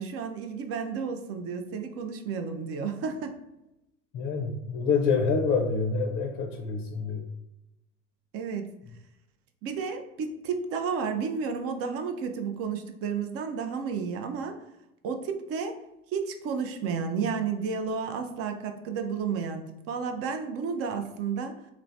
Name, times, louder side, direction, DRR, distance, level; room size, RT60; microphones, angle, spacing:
voice 1, 0.0-3.3 8.3-8.6 9.6-14.6 15.0-15.8 16.1-21.6, right 5 dB, 40° right, 6 dB, 0.4 m, -32 dB
voice 2, 4.1-7.3, left 4 dB, 35° left, 2 dB, 0.5 m, -27 dB
3.1 x 2.0 x 2.6 m, 0.89 s
hypercardioid pair, 75°, 38 cm